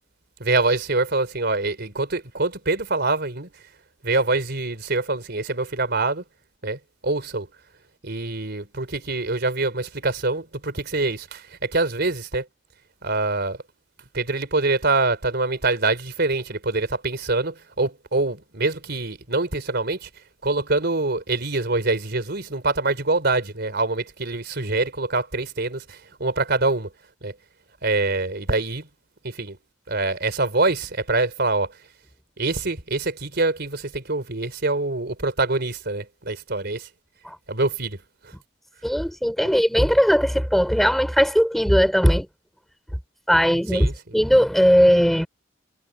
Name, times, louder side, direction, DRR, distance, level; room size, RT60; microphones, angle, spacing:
voice 1, 0.4-3.5 4.0-6.2 6.6-7.5 8.0-12.5 13.0-13.6 14.1-20.1 20.4-26.9 27.2-27.3 27.8-28.9 29.2-29.6 29.9-31.7 32.4-36.9 37.5-38.0 39.4-39.5 43.7-44.2, right 3 dB, 55° right, 3.9 m, -25 dB
voice 2, 38.8-42.3 43.3-43.9 44.1-45.3, equal, ahead, 5.3 m, -18 dB
head